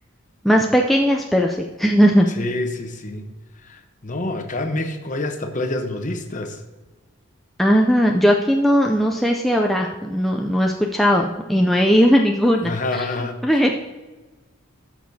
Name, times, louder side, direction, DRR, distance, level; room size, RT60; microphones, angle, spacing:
voice 1, 0.4-2.3 7.6-13.0 13.4-13.7, equal, ahead, 0 dB, 0.4 m, -18 dB
voice 2, 2.3-6.6 12.6-13.7, left 2 dB, 35° left, 6 dB, 0.8 m, -28 dB
13.0 x 6.1 x 2.7 m, 1.2 s
head